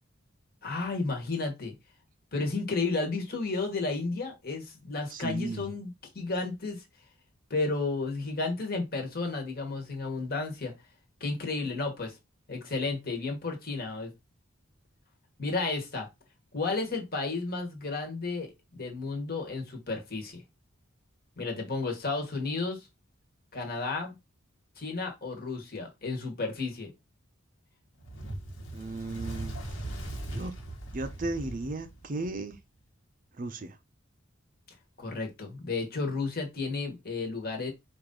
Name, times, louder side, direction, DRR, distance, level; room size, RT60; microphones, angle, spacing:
voice 1, 0.6-1.7 2.3-6.8 7.5-10.7 11.2-12.2 12.5-14.1 15.4-16.1 16.5-20.4 21.4-22.9 23.5-24.1 24.8-26.9 35.0-37.7, left 3 dB, 45° left, 1.3 m, -32 dB
voice 2, 5.1-5.7 28.7-29.6 30.3-30.5 30.9-32.6 33.4-33.8, right 2 dB, 40° right, 0.5 m, -35 dB
Fire, 28.0-32.6, right 1 dB, 70° left, 1.3 m, -39 dB
4.8 x 2.6 x 3.7 m
head